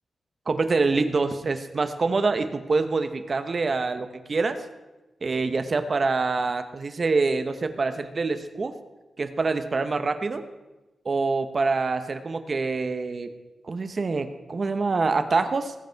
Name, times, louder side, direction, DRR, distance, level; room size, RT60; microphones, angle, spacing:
voice 1, 0.5-4.6 5.2-8.7 9.2-10.4 11.0-13.3 13.6-15.7, right 3 dB, 40° right, 9 dB, 0.9 m, -25 dB
19.5 x 8.2 x 4.6 m, 1.1 s
wide cardioid pair, 145°, 0 cm